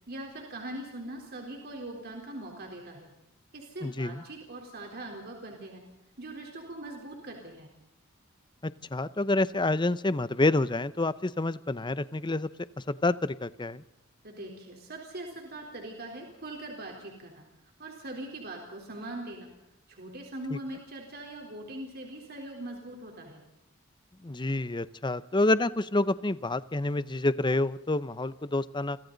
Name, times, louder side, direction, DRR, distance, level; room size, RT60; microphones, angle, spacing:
voice 1, 0.1-3.1 3.5-5.8 6.2-7.7 14.2-17.4 17.8-19.5 19.9-23.4, right 1 dB, 50° right, 1 dB, 3.8 m, -41 dB
voice 2, 3.8-4.2 8.6-12.5 12.9-13.8 20.5-20.6 24.2-29.0, left 2 dB, 20° left, 15 dB, 0.7 m, -28 dB
30.0 x 25.0 x 4.0 m, 0.89 s
head